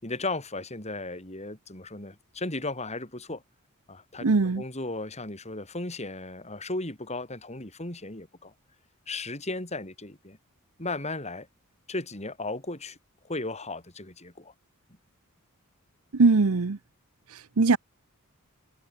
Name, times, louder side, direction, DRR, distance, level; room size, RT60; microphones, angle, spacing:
voice 1, 0.0-3.4 3.9-8.5 9.1-10.4 10.8-11.5 11.9-13.0 13.2-14.5, left 2 dB, 30° left, 6.1 m, -35 dB
voice 2, 4.2-4.6 16.1-16.8 17.6-17.8, right 3 dB, 85° right, 0.8 m, -20 dB
head